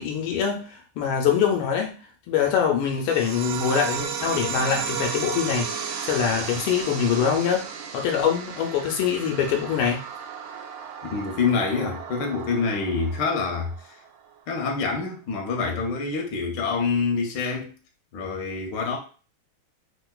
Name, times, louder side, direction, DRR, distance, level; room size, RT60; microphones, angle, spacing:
voice 1, 0.0-2.0 2.3-7.7 7.9-10.0, left 7 dB, 85° left, 1 dB, 1.4 m, -24 dB
sound 1, 3.1-14.1, right 7 dB, 85° right, 1.5 m, -34 dB
voice 2, 11.0-13.7 14.5-17.7 18.1-19.0, left 4 dB, 70° left, 2 dB, 1.1 m, -26 dB
3.6 x 2.5 x 2.2 m, 0.37 s
omnidirectional pair, 2.3 m